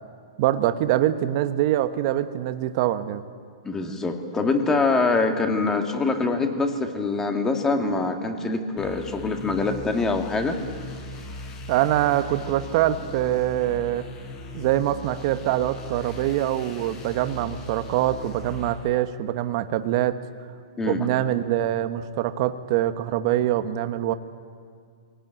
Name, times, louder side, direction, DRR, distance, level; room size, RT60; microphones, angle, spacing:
voice 1, 0.4-3.2 11.7-14.0 14.5-20.2 20.9-24.1, right 13 dB, 45° right, 10 dB, 1.2 m, -24 dB
voice 2, 3.6-10.6 20.8-21.1, left 3 dB, 15° left, 5 dB, 2.0 m, -24 dB
sound 1, 8.8-18.7, left 1 dB, 30° left, 5.1 m, -39 dB
23.5 x 18.0 x 9.0 m, 2.2 s
hypercardioid pair, 140°, 4 cm